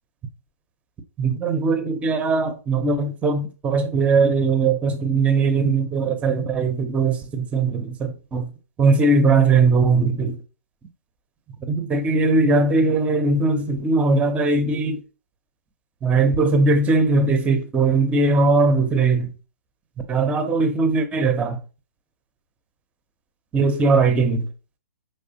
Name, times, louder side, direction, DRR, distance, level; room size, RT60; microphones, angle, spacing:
voice 1, 1.2-8.5 8.8-10.4 11.7-15.0 16.0-19.3 20.1-21.6 23.5-24.5, right 3 dB, 15° right, 0.6 m, -20 dB
4.7 x 3.3 x 2.8 m
figure-of-eight pair, 120°, 9 cm